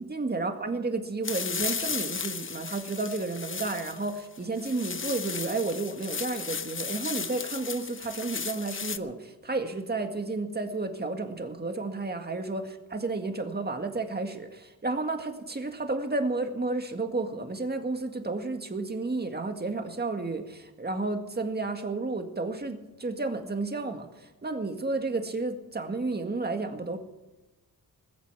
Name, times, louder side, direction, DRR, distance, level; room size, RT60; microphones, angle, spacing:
voice 1, 0.0-27.0, right 3 dB, 25° right, 5 dB, 2.0 m, -32 dB
sound 1, 1.2-9.0, left 5 dB, 35° left, 0.8 m, -35 dB
21.0 x 8.3 x 6.8 m, 1.1 s
wide cardioid pair, 100°, 38 cm